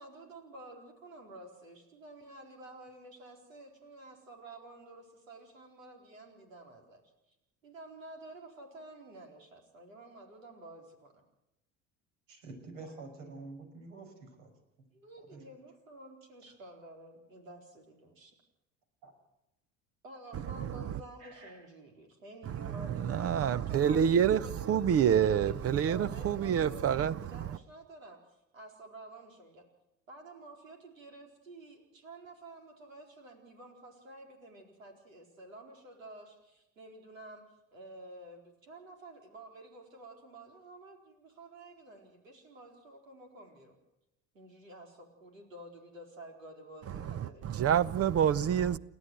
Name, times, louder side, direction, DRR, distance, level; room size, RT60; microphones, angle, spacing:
voice 1, 0.0-7.0 7.6-11.2 14.9-18.3 20.0-28.2 28.5-29.6 30.1-37.4 37.7-43.8 44.3-47.6, right 1 dB, 85° right, 4.5 m, -51 dB
voice 2, 12.3-14.5 15.2-15.4 19.0-19.1 21.2-21.6, right 3 dB, 70° right, 5.6 m, -48 dB
voice 3, 23.1-24.4 24.7-27.1 47.4-48.8, right 8 dB, 35° right, 0.8 m, -26 dB
29.0 x 13.0 x 8.0 m
hypercardioid pair, 65°, 39 cm